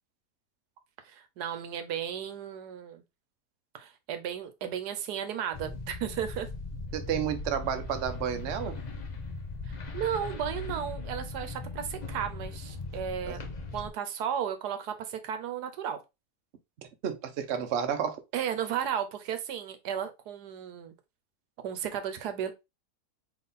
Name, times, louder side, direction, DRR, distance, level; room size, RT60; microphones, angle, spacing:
voice 1, 1.0-3.0 3.7-6.5 9.7-13.4 13.7-16.0 18.3-20.9 21.6-22.5, right 9 dB, 80° right, 1.3 m, -34 dB
sound 1, 5.5-13.9, left 3 dB, 50° left, 0.5 m, -39 dB
voice 2, 6.9-8.8 13.2-13.4 17.0-18.2, right 8 dB, 55° right, 0.8 m, -31 dB
4.1 x 3.1 x 3.6 m
omnidirectional pair, 1.7 m